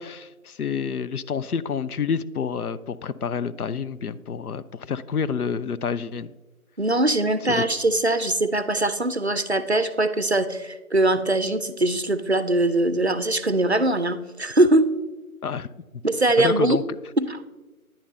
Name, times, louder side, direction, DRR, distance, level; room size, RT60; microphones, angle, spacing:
voice 1, 0.0-6.3 7.5-7.6 15.4-15.7 16.4-16.8, left 6 dB, 85° left, 14 dB, 0.6 m, -28 dB
voice 2, 6.8-14.9 16.0-16.8 17.2-17.4, right 2 dB, 50° right, 12 dB, 0.5 m, -22 dB
10.0 x 8.6 x 2.6 m, 1.2 s
figure-of-eight pair, 170°, 44 cm